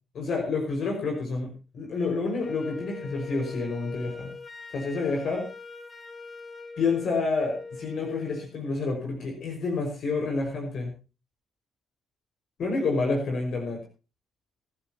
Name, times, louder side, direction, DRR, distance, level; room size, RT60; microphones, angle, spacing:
voice 1, 0.1-4.3 4.7-5.5 6.8-10.9 12.6-13.8, left 3 dB, 50° left, 2 dB, 5.3 m, -29 dB
Wind instrument woodwind instrument, 2.4-8.5, left 3 dB, 30° left, 2.8 m, -42 dB
23.0 x 12.5 x 2.9 m, 0.33 s
figure-of-eight pair, 45°, 0 cm